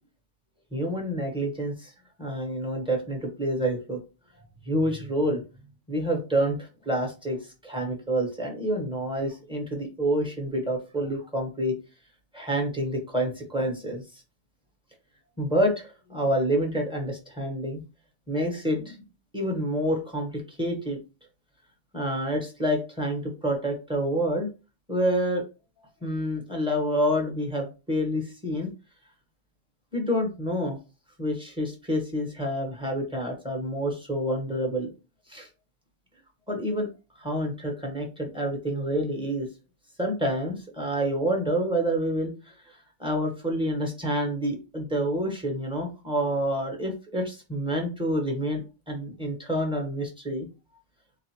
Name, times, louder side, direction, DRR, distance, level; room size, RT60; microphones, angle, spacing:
voice 1, 0.7-1.9 2.2-4.0 4.6-5.4 5.9-11.7 12.3-14.0 15.4-17.8 18.3-19.0 19.3-21.0 21.9-24.5 24.9-25.4 26.0-28.7 29.9-30.8 31.2-34.9 35.3-35.5 36.5-36.9 37.2-39.5 40.0-42.3 43.0-50.5, equal, 5° right, 1 dB, 0.9 m, -28 dB
3.8 x 2.8 x 2.9 m, 0.30 s
omnidirectional pair, 1.3 m